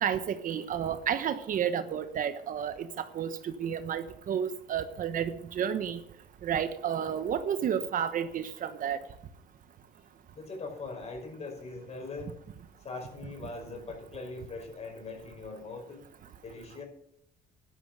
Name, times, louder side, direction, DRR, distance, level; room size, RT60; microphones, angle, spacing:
voice 1, 0.0-6.0 6.4-9.0, right 8 dB, 55° right, 10 dB, 1.2 m, -31 dB
voice 2, 10.3-12.3 12.8-16.0 16.4-16.8, left 3 dB, 40° left, 4 dB, 5.4 m, -41 dB
12.0 x 11.5 x 6.6 m, 0.73 s
cardioid pair, 110°, 17 cm